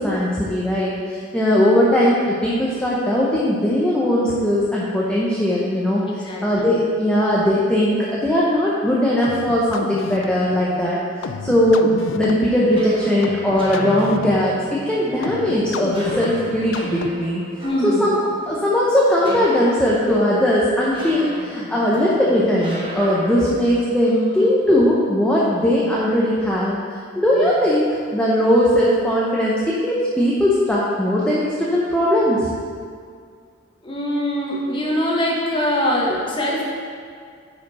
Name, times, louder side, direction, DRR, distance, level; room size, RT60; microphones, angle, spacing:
voice 1, 0.0-11.0 11.4-17.4 17.8-18.2 18.5-26.8 27.2-32.5, equal, 5° left, -7 dB, 0.8 m, -19 dB
voice 2, 6.3-6.7 17.6-18.1 24.1-24.5 27.4-27.5 33.8-36.7, left 1 dB, 25° left, -3 dB, 1.3 m, -23 dB
sound 1, 9.2-17.4, left 4 dB, 70° left, 0.4 m, -32 dB
sound 2, 12.3-23.5, equal, 25° right, 1.4 m, -36 dB
9.2 x 5.0 x 4.2 m, 2.2 s
head